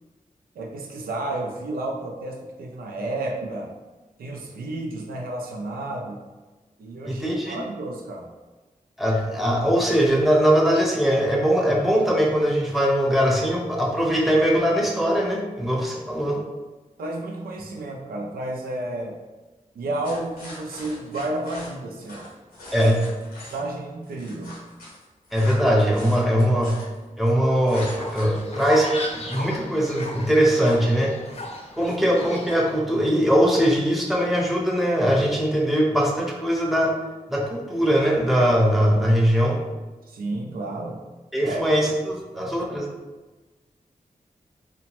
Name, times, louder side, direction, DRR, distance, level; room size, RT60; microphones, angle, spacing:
voice 1, 0.5-3.7 4.2-6.2 6.8-8.3 16.3-16.4 17.0-19.2 19.7-22.3 22.7-22.9 23.4-24.6 40.0-41.0 41.4-41.6 42.3-42.8, right 2 dB, 90° right, 0 dB, 0.4 m, -31 dB
voice 2, 7.1-7.6 9.0-16.4 22.7-23.0 25.3-26.8 27.2-31.1 31.8-37.0 37.3-39.6 41.3-42.9, equal, ahead, -2 dB, 0.7 m, -21 dB
sound 1, 20.0-23.6 24.0-27.3 27.7-28.4, left 1 dB, 85° left, 0.9 m, -42 dB
Fowl, 27.8-32.8, left 1 dB, 45° left, 0.6 m, -36 dB
2.8 x 2.1 x 2.9 m, 1.2 s
cardioid pair, 45°, 15 cm